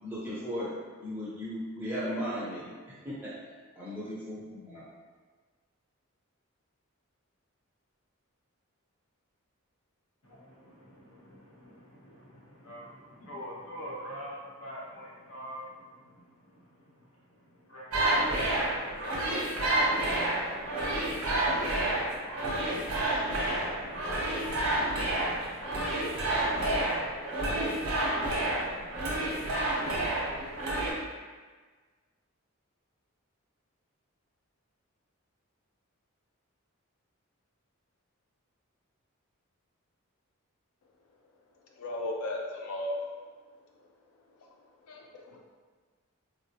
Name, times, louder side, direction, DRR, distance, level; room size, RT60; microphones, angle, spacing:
voice 1, 0.0-2.7 3.0-3.3 3.7-4.8, equal, 10° right, -9 dB, 0.7 m, -36 dB
voice 2, 10.2-24.5, equal, 65° left, -5 dB, 0.8 m, -47 dB
sound 1, 17.9-30.9, right 1 dB, 75° right, 0.7 m, -29 dB
voice 3, 41.6-43.0 44.4-45.4, left 1 dB, 85° left, 0 dB, 0.4 m, -36 dB
3.6 x 2.0 x 2.7 m, 1.5 s
head